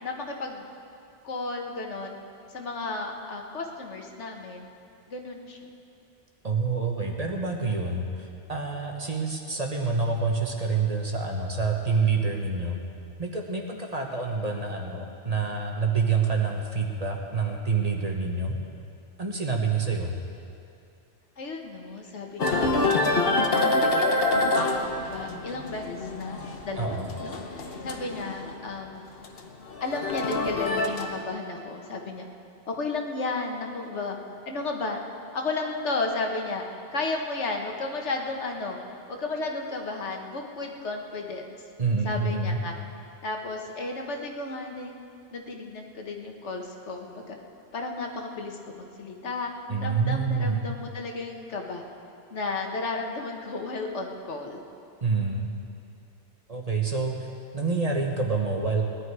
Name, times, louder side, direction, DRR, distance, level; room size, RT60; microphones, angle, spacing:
voice 1, 0.0-0.6 1.2-2.1 2.5-4.7 5.1-5.6 21.4-22.8 23.5-29.1 29.8-32.3 32.7-34.2 34.4-35.0 35.3-36.6 36.9-38.8 39.1-41.5 42.0-42.8 43.2-45.0 45.3-47.4 47.7-49.5 49.8-51.8 52.3-54.6, left 3 dB, 80° left, 2 dB, 1.6 m, -33 dB
voice 2, 6.4-12.8 13.2-18.6 19.2-20.2 26.8-27.1 41.8-42.6 49.7-50.7 55.0-55.5 56.5-57.3 57.5-58.8, right 4 dB, 35° right, 0 dB, 1.4 m, -27 dB
sound 1, 22.4-28.7 29.0-31.2, left 2 dB, 55° left, 1.2 m, -26 dB
19.0 x 11.0 x 4.8 m, 2.5 s
omnidirectional pair, 1.2 m